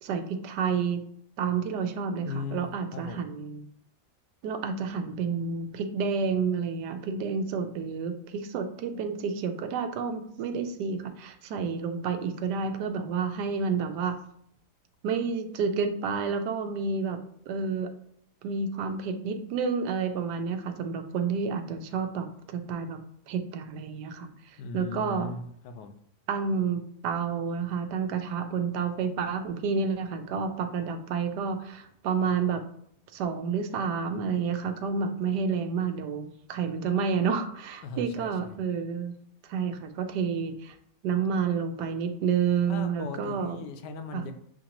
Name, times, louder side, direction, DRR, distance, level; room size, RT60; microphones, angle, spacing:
voice 1, 0.0-1.0 1.4-3.7 4.4-14.2 15.0-17.2 17.5-17.9 18.4-23.0 23.3-25.3 26.3-32.6 33.1-39.1 39.5-40.7 41.0-43.6 44.1-44.3, right 5 dB, 80° right, 7 dB, 1.2 m, -30 dB
voice 2, 2.2-2.7 2.9-3.2 24.6-25.9 37.8-38.6 42.7-44.3, left 4 dB, 80° left, 7 dB, 1.2 m, -38 dB
7.1 x 2.6 x 2.9 m, 0.68 s
omnidirectional pair, 1.8 m